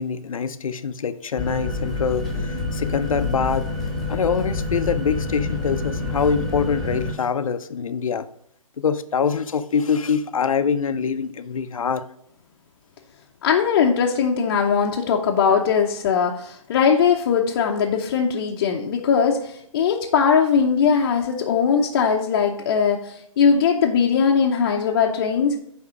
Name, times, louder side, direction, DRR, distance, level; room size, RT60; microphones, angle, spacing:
voice 1, 0.0-3.7 4.1-8.3 8.8-12.0, left 6 dB, 70° left, 10 dB, 0.6 m, -24 dB
sound 1, 1.4-7.1, left 2 dB, ahead, 1.3 m, -27 dB
voice 2, 13.4-25.5, left 6 dB, 35° left, -1 dB, 0.7 m, -20 dB
9.5 x 3.6 x 4.8 m, 0.71 s
hypercardioid pair, 145°, 18 cm